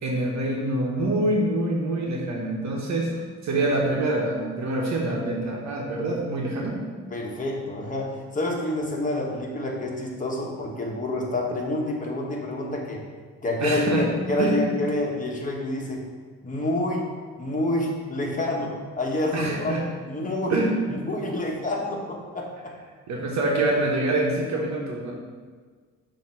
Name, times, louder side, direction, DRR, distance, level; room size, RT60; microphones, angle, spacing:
voice 1, 0.0-6.8 13.6-14.1 14.4-14.6 19.3-19.8 20.5-20.8 23.1-25.1, right 2 dB, 65° right, -1 dB, 1.2 m, -25 dB
voice 2, 7.1-13.0 13.4-16.0 16.4-20.6 20.9-22.7, left 1 dB, 25° left, -1 dB, 1.4 m, -28 dB
7.1 x 3.0 x 5.7 m, 1.5 s
cardioid pair, 90°, 30 cm